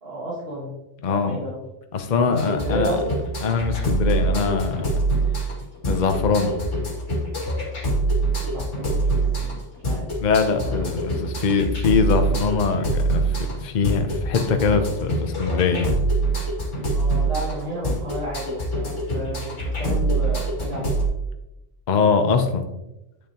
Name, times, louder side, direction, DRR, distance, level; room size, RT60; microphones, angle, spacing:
voice 1, 0.0-0.8 1.1-1.6 2.2-3.2 8.4-9.0 9.4-9.6 9.8-10.1 10.6-10.7 16.9-21.0, right 1 dB, 50° right, -6 dB, 2.3 m, -32 dB
voice 2, 1.0-1.4 1.9-3.0 3.4-5.0 5.8-6.6 10.2-15.9 21.9-22.6, left 5 dB, 45° left, 6 dB, 0.7 m, -22 dB
sound 1, 2.4-21.1, right 2 dB, 70° left, 2.4 m, -25 dB
8.7 x 6.7 x 2.9 m, 0.95 s
omnidirectional pair, 1.3 m